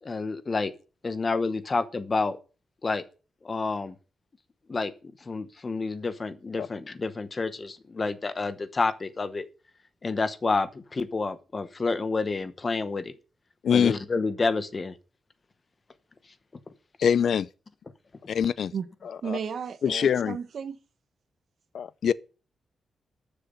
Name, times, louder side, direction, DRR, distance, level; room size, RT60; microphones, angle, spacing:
voice 1, 0.0-0.7 1.0-2.4 2.8-3.0 3.4-4.0 4.7-4.9 5.2-9.4 10.0-13.1 13.7-14.9, left 3 dB, 25° left, 1.0 m, -29 dB
voice 2, 17.0-17.5 18.3-18.7 19.3-19.4 19.8-20.4 21.7-22.1, left 8 dB, 60° left, 0.5 m, -23 dB
voice 3, 19.2-20.8, right 7 dB, 50° right, 1.3 m, -34 dB
13.0 x 6.8 x 5.5 m
wide cardioid pair, 175°, 0 cm